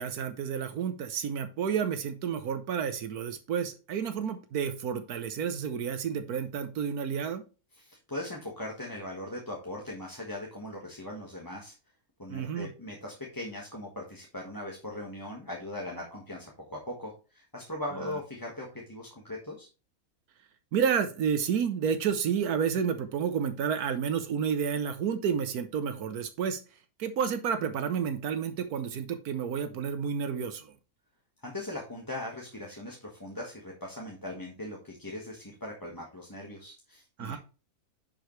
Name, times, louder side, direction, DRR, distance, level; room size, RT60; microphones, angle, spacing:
voice 1, 0.0-7.4 12.3-12.7 20.7-26.6 27.0-30.7 37.2-37.4, right 7 dB, 80° right, 9 dB, 1.3 m, -30 dB
voice 2, 7.7-11.7 12.2-19.7 31.4-37.4, left 1 dB, 15° left, -2 dB, 1.4 m, -40 dB
10.5 x 4.9 x 3.2 m, 0.33 s
omnidirectional pair, 1.6 m